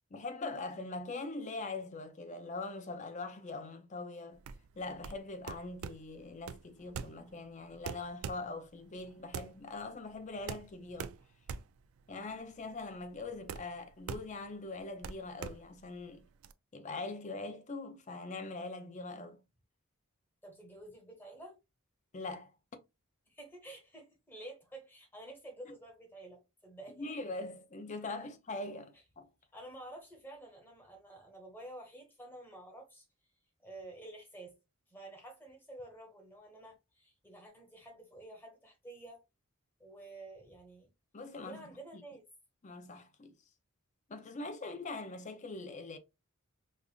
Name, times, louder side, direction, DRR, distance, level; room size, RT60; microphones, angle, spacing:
voice 1, 0.1-4.4 4.8-11.1 12.1-16.3 16.7-19.4 22.1-22.5 27.0-29.3 41.1-41.7 42.6-43.3 44.1-46.0, left 3 dB, 35° left, 0.5 m, -42 dB
sound 1, 4.3-16.5, right 6 dB, 65° right, 0.3 m, -45 dB
voice 2, 20.4-21.6 23.3-27.1 29.5-33.0 33.6-34.5 34.9-39.2 39.8-40.9 41.4-42.2, right 1 dB, 10° left, 1.2 m, -50 dB
5.2 x 2.4 x 2.3 m
head